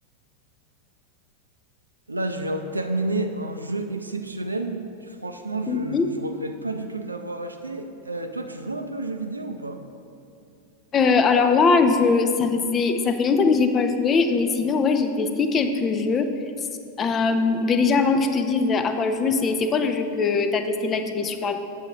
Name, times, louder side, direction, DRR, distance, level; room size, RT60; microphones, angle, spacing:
voice 1, 2.1-9.8, right 2 dB, 80° right, 6 dB, 0.4 m, -30 dB
voice 2, 5.7-6.1 10.9-16.3 17.0-21.6, left 4 dB, 25° left, 7 dB, 0.4 m, -21 dB
7.6 x 6.3 x 3.0 m, 2.7 s
figure-of-eight pair, 90°, 0 cm